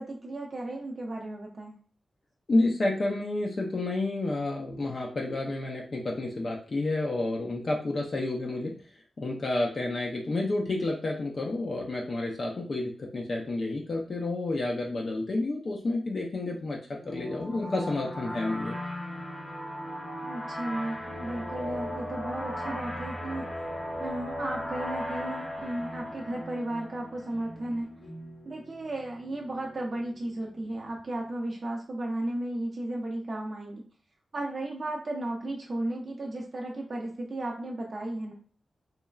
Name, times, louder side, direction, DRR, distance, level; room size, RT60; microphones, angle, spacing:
voice 1, 0.0-1.7 20.2-23.5 24.0-27.9 28.4-33.8 34.3-38.3, right 1 dB, 35° right, -2 dB, 0.5 m, -34 dB
voice 2, 2.5-8.8 9.2-18.8, left 2 dB, 40° left, -1 dB, 0.4 m, -30 dB
sound 1, 17.0-27.4, equal, 10° left, 0.8 m, -36 dB
sound 2, 25.0-31.3, equal, 85° left, 0.9 m, -49 dB
3.0 x 2.3 x 2.2 m, 0.44 s
wide cardioid pair, 180°, 0 cm